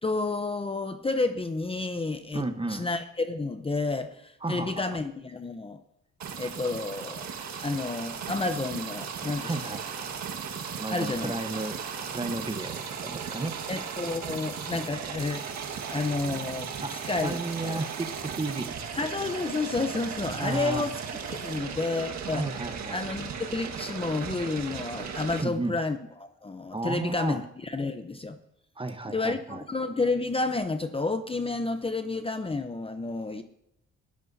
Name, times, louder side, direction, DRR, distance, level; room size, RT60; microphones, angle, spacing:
voice 1, 0.0-5.8 6.4-7.3 7.6-9.6 10.9-11.4 13.7-15.5 15.9-17.8 18.9-21.0 21.3-22.4 22.9-28.4 29.1-33.4, left 3 dB, 20° left, 8 dB, 0.8 m, -30 dB
voice 2, 2.3-2.9 4.4-4.9 9.4-9.8 10.8-11.8 12.1-13.6 16.8-16.9 17.2-18.8 20.4-20.9 22.3-23.0 25.3-25.8 26.7-27.4 28.8-29.6, right 3 dB, 15° right, 8 dB, 1.1 m, -33 dB
sound 1, 6.2-25.4, right 6 dB, 65° right, 1.7 m, -36 dB
20.0 x 13.5 x 2.8 m, 0.79 s
cardioid pair, 90°, 30 cm